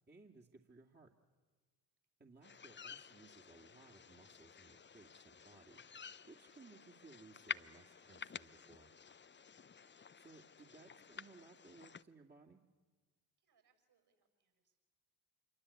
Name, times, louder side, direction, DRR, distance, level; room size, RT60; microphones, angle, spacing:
voice 1, 0.1-1.1 2.2-5.8 6.2-8.9 10.2-12.6, right 3 dB, 20° right, -1 dB, 2.4 m, -61 dB
sound 1, 2.4-12.0, left 6 dB, 25° left, 0.7 m, -51 dB
voice 2, 9.6-10.0 13.4-14.8, right 6 dB, 50° right, 6 dB, 7.8 m, -80 dB
27.0 x 23.0 x 8.6 m, 1.4 s
hypercardioid pair, 40°, 49 cm